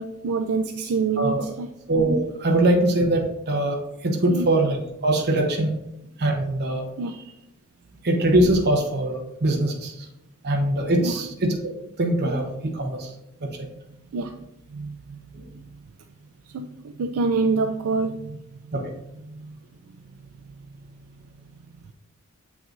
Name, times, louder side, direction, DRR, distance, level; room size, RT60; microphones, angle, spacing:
voice 1, 0.0-1.7 4.3-4.5 7.0-7.2 11.0-11.1 14.1-14.4 14.7-15.2 16.5-18.4 19.3-19.5, right 4 dB, 70° right, 5 dB, 0.4 m, -26 dB
voice 2, 1.9-4.8 5.0-5.7 6.2-6.8 8.0-10.0 10.4-11.6 12.0-13.1 13.4-13.5 15.3-15.4 18.7-18.9, right 1 dB, 45° right, 0 dB, 0.9 m, -22 dB
7.5 x 5.8 x 2.6 m, 0.85 s
head